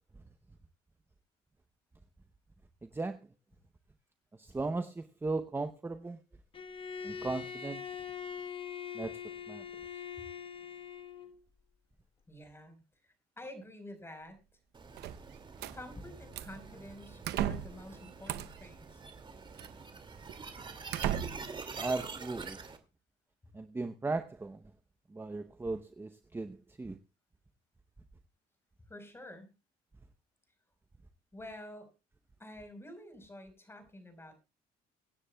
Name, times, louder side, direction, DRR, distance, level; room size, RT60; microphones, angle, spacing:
voice 1, 2.8-3.2 4.4-6.2 7.0-7.8 8.9-9.2 9.5-9.6 21.8-22.6 23.5-24.6 25.1-27.0, right 3 dB, 15° right, 0.8 m, -37 dB
Bowed string instrument, 6.5-11.4, left 7 dB, 30° left, 1.1 m, -42 dB
voice 2, 12.3-14.4 15.7-19.0 28.9-29.5 31.3-31.9 32.4-34.3, left 1 dB, 15° left, 4.4 m, -49 dB
sound 1, 14.7-22.8, right 4 dB, 30° right, 2.3 m, -46 dB
sound 2, 15.0-15.8 16.3-16.6 17.2-17.8 18.3-18.7 19.6-19.7 20.3-20.4 20.9-21.6, right 11 dB, 75° right, 0.8 m, -35 dB
24.0 x 9.7 x 2.3 m
cardioid pair, 110°, 17 cm